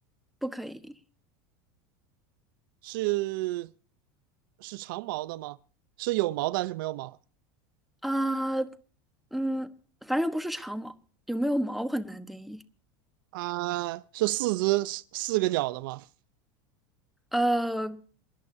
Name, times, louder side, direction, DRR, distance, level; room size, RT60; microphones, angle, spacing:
voice 1, 0.4-0.9 8.0-8.7 9.3-9.7 10.0-10.9 11.3-12.6 17.3-18.0, right 1 dB, ahead, 1.2 m, -29 dB
voice 2, 2.8-3.7 4.6-5.6 6.0-7.2 13.3-16.0, right 19 dB, 75° right, 0.6 m, -29 dB
27.0 x 11.0 x 2.7 m
supercardioid pair, 125°, 11 cm